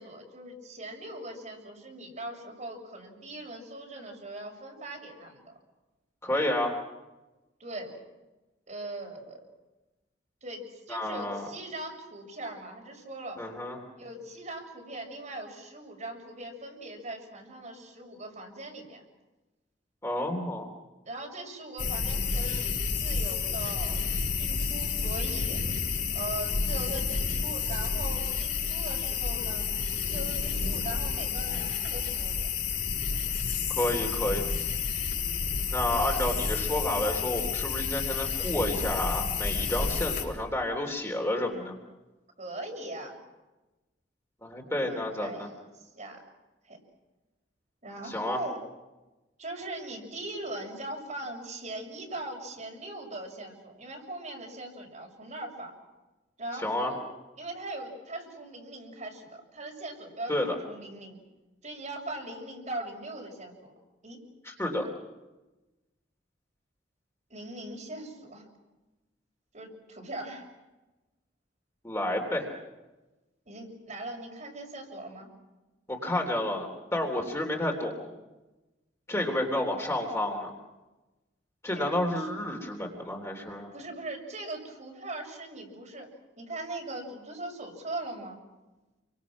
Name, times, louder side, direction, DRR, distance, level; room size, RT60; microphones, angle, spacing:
voice 1, 0.0-5.5 7.6-8.0 8.7-9.4 10.4-13.4 14.0-19.0 21.0-25.6 26.1-29.7 30.1-32.5 42.4-43.2 44.8-46.2 46.7-46.8 47.8-48.6 49.4-55.7 56.4-57.0 57.4-61.2 61.6-63.7 64.0-64.2 67.3-68.5 69.5-70.5 73.4-75.3 81.7-82.3 83.7-86.1 86.4-88.4, right 1 dB, 40° right, 0 dB, 6.8 m, -40 dB
voice 2, 6.2-6.8 10.9-11.5 13.4-13.8 20.0-20.7 22.5-22.6 33.8-34.4 35.7-41.8 44.4-45.5 48.0-48.4 56.5-56.9 60.3-60.6 64.4-64.9 71.8-72.5 75.9-78.1 79.1-80.5 81.6-83.7, left 1 dB, 15° left, 1 dB, 3.5 m, -30 dB
sound 1, 21.8-40.2, left 5 dB, 50° left, 5.5 m, -30 dB
29.5 x 24.5 x 6.2 m, 1.1 s
head